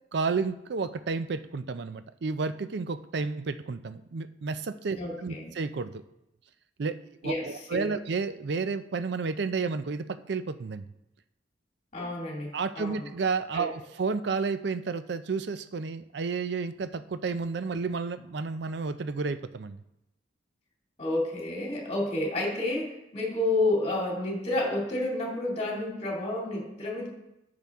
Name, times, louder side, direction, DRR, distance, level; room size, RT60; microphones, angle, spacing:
voice 1, 0.1-6.0 6.8-7.0 7.2-10.9 12.5-19.8, right 4 dB, 60° right, 12 dB, 0.5 m, -31 dB
voice 2, 4.9-5.5 7.2-7.9 11.9-13.1 13.5-13.7 21.0-27.1, left 2 dB, 35° left, -2 dB, 2.4 m, -30 dB
10.0 x 6.8 x 3.6 m, 0.90 s
head